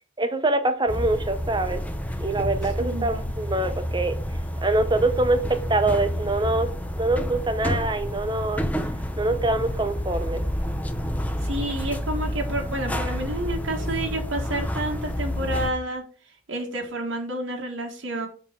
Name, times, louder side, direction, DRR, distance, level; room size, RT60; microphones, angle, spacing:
voice 1, 0.2-1.8 2.2-4.2 4.6-6.7 7.0-8.6 9.2-10.4, right 2 dB, 25° right, 0.9 m, -24 dB
sound 1, 0.9-15.7, equal, 10° left, 0.6 m, -29 dB
voice 2, 2.8-3.3 11.4-16.0 16.5-18.3, right 1 dB, 90° right, 1.7 m, -30 dB
6.9 x 3.8 x 6.0 m
head